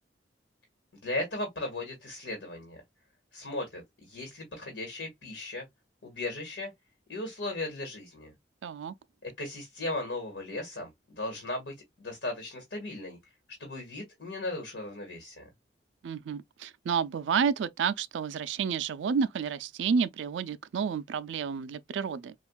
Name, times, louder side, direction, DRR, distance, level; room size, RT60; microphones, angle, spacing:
voice 1, 1.0-2.8 3.3-5.6 6.0-6.7 7.1-8.3 9.2-13.2 13.6-15.5, left 2 dB, 75° left, 1.4 m, -37 dB
voice 2, 8.6-8.9 16.0-22.3, right 6 dB, 85° right, 0.4 m, -30 dB
4.3 x 2.3 x 2.2 m
head